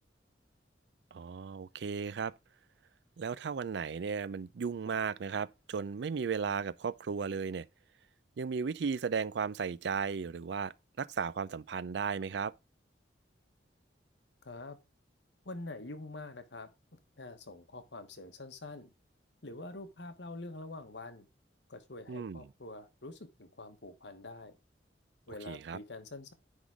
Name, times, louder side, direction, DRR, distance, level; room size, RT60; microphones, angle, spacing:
voice 1, 1.1-2.3 3.2-7.7 8.4-12.5 22.1-22.5 25.5-25.8, right 6 dB, 70° right, 0.4 m, -35 dB
voice 2, 14.4-14.8 15.4-18.9 19.4-21.3 21.7-24.5 25.3-26.3, left 2 dB, 75° left, 1.3 m, -46 dB
10.0 x 3.7 x 4.8 m
head